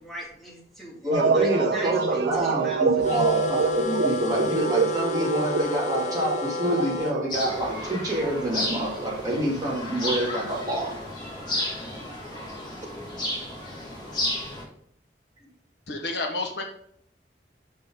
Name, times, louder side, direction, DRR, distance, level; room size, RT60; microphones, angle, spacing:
voice 1, 0.0-1.0 1.3-4.0, equal, ahead, -6 dB, 2.6 m, -39 dB
voice 2, 1.0-10.9, right 1 dB, 20° right, -6 dB, 2.8 m, -27 dB
sound 1, 1.1-11.1, right 5 dB, 70° right, 0.4 m, -28 dB
sound 2, 3.0-7.1, left 5 dB, 40° left, 0.8 m, -32 dB
sound 3, 7.3-14.6, left 1 dB, 25° left, 2.1 m, -33 dB
voice 3, 15.9-16.6, left 2 dB, 80° left, 2 dB, 1.4 m, -30 dB
6.4 x 5.9 x 3.9 m, 0.68 s
head